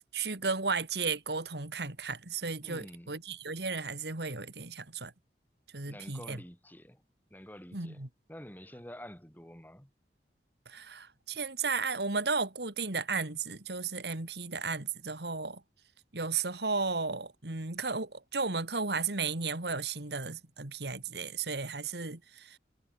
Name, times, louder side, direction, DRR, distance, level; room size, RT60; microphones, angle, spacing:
voice 1, 0.0-5.1 5.7-6.4 7.7-8.1 10.7-15.6 16.1-22.6, right 4 dB, 70° right, 2.5 m, -34 dB
voice 2, 2.6-3.1 5.8-7.0 7.3-9.9, equal, 10° left, 4.4 m, -48 dB
head